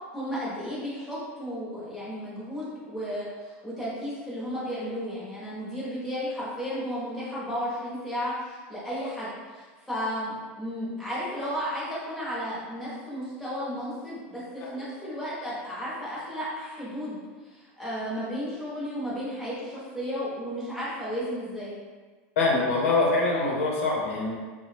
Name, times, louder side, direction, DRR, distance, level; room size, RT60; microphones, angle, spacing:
voice 1, 0.1-21.8, equal, 5° left, -10 dB, 1.0 m, -33 dB
voice 2, 22.4-24.3, left 3 dB, 80° left, -2 dB, 0.8 m, -24 dB
2.9 x 2.2 x 3.3 m, 1.4 s
supercardioid pair, 165°, 7 cm